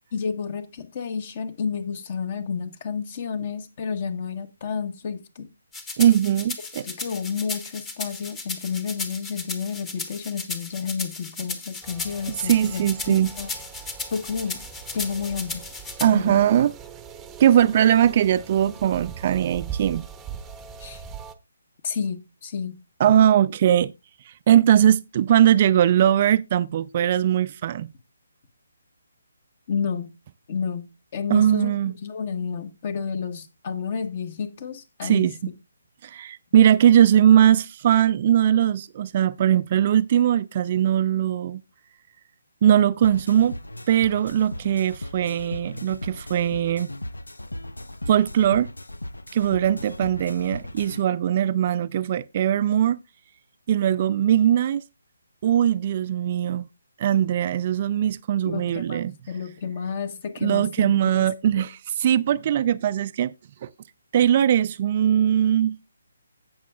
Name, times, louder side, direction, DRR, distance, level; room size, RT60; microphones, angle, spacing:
voice 1, 0.1-5.5 6.8-13.5 14.1-14.6 14.9-15.6 16.1-16.4 20.8-21.0 21.8-22.8 29.7-30.1 30.5-31.7 32.0-35.3 58.4-61.6, left 6 dB, 40° left, 1.2 m, -31 dB
sound 1, 5.7-16.1, left 3 dB, 15° left, 1.0 m, -35 dB
voice 2, 6.0-6.8 12.4-13.3 16.0-16.7 17.4-20.1 23.0-23.9 24.5-27.9 31.3-31.9 35.0-35.3 36.0-41.6 42.6-43.6 43.9-46.9 48.1-48.7 49.3-53.0 53.7-54.8 55.4-56.7 57.0-59.1 60.4-63.3 63.6-63.7 64.1-65.8, right 10 dB, 35° right, 0.4 m, -20 dB
sound 2, 11.8-21.3, right 8 dB, 10° right, 0.8 m, -41 dB
sound 3, 43.0-51.0, left 1 dB, 80° left, 0.6 m, -37 dB
16.5 x 6.2 x 2.4 m
figure-of-eight pair, 145°, 0 cm